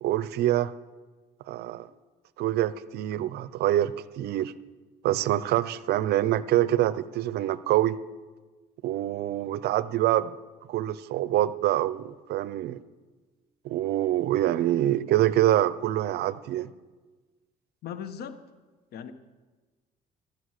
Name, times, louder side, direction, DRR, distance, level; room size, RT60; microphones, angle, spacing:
voice 1, 0.0-0.7 1.5-1.9 2.4-4.5 5.0-8.0 8.8-10.3 10.7-12.8 13.6-16.7, right 13 dB, 75° right, 16 dB, 0.7 m, -25 dB
voice 2, 17.8-18.4 18.9-19.1, left 8 dB, 70° left, 10 dB, 1.3 m, -37 dB
15.5 x 12.0 x 6.6 m, 1.3 s
cardioid pair, 110°, 17 cm